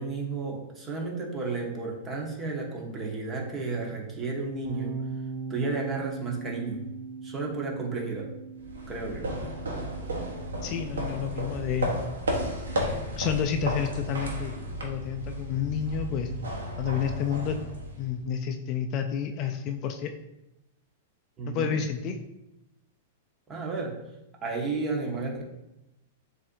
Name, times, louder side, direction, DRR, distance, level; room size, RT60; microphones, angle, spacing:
voice 1, 0.0-5.0 5.5-6.9 7.2-8.3 8.9-9.3 21.4-21.8 23.5-24.0 24.4-25.4, right 3 dB, 25° right, 0 dB, 1.1 m, -32 dB
sound 1, 4.6-10.9, right 4 dB, 60° right, 0.8 m, -39 dB
sound 2, 8.6-18.2, equal, 85° right, 1.0 m, -33 dB
voice 2, 10.6-11.9 13.2-14.6 14.8-16.3 16.8-17.6 18.0-20.1 21.5-22.2, left 8 dB, 40° left, 6 dB, 0.4 m, -30 dB
7.2 x 2.7 x 2.6 m, 0.90 s
hypercardioid pair, 115°, 0 cm